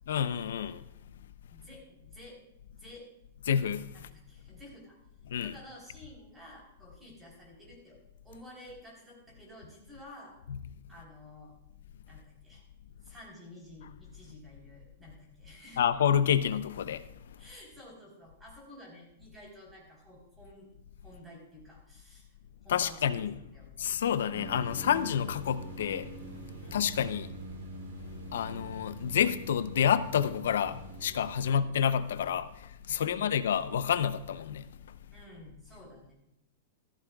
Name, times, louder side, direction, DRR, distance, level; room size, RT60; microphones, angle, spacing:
voice 1, 0.1-0.8 3.5-3.9 5.3-5.5 10.5-10.6 15.8-17.0 22.7-23.3 23.8-26.1 26.7-27.3 28.3-34.7, left 8 dB, 80° left, 0.7 m, -29 dB
voice 2, 1.5-2.4 2.8-3.1 3.9-5.0 5.4-10.3 10.9-11.5 12.1-12.6 13.0-15.9 17.4-20.7 21.0-22.3 22.6-23.3 23.5-23.9 26.6-26.9 31.4-31.7 33.0-33.4 35.1-36.1, left 1 dB, 10° right, 4.0 m, -51 dB
sound 1, 24.3-31.5, right 1 dB, 65° right, 3.2 m, -44 dB
15.5 x 14.0 x 2.4 m
supercardioid pair, 165°, 0 cm